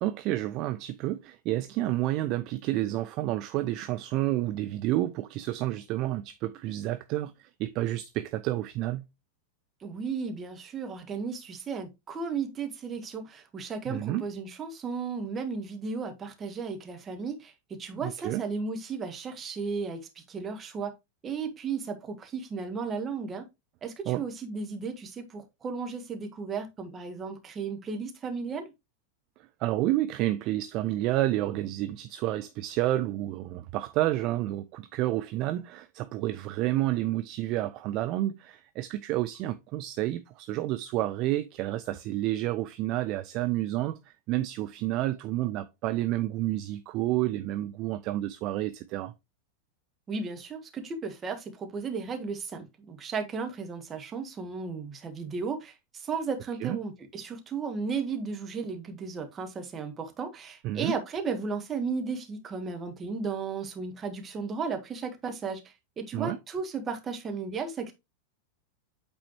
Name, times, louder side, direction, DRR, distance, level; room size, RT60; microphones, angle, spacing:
voice 1, 0.0-9.0 13.9-14.2 18.0-18.4 24.1-24.2 29.6-49.1 56.6-56.8 60.6-60.9 66.1-66.4, right 15 dB, 40° right, 0.4 m, -30 dB
voice 2, 9.8-17.5 17.8-20.0 20.3-20.9 21.2-23.4 23.8-28.7 50.1-65.6 66.0-67.9, right 5 dB, 20° right, 1.4 m, -34 dB
8.5 x 4.2 x 3.0 m
figure-of-eight pair, 90°, 0 cm